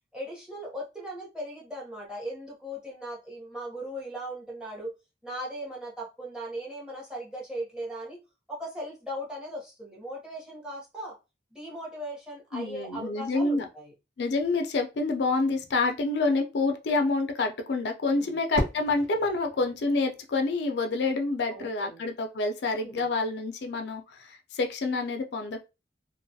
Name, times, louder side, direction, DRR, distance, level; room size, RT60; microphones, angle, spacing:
voice 1, 0.1-4.9 5.2-8.2 8.5-11.1 11.5-13.9 18.1-18.3 21.4-22.1 22.7-23.1, right 1 dB, 5° right, -5 dB, 0.8 m, -38 dB
voice 2, 12.5-13.6 14.2-25.7, left 3 dB, 70° left, 4 dB, 0.4 m, -28 dB
Fireworks, 18.5-20.7, right 1 dB, 85° right, 1.0 m, -35 dB
2.5 x 2.2 x 2.7 m, 0.27 s
head